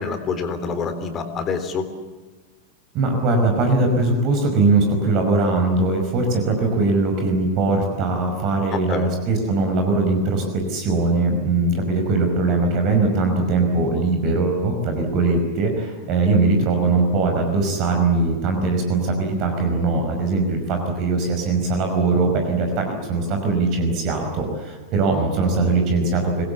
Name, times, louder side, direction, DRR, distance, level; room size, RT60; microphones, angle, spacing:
voice 1, 0.0-1.9 8.7-9.1, left 5 dB, 30° left, 8 dB, 3.6 m, -26 dB
voice 2, 2.9-26.5, right 3 dB, 40° right, 4 dB, 5.3 m, -21 dB
26.5 x 21.0 x 8.4 m, 1.3 s
figure-of-eight pair, 90°, 0 cm